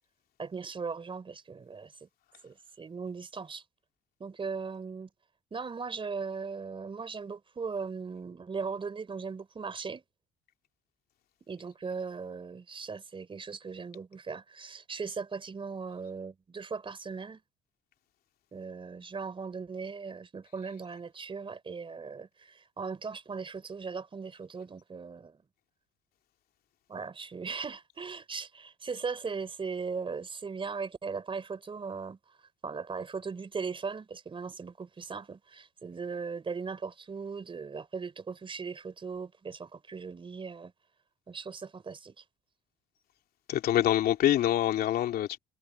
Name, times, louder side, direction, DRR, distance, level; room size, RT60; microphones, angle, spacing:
voice 1, 0.4-2.1 2.4-3.6 4.2-5.1 5.5-10.0 11.5-17.4 18.5-25.4 26.9-32.2 32.6-40.7 41.3-42.2, right 5 dB, 30° right, 3.9 m, -38 dB
voice 2, 43.5-45.4, left 12 dB, 70° left, 2.8 m, -25 dB
supercardioid pair, 85°, 17 cm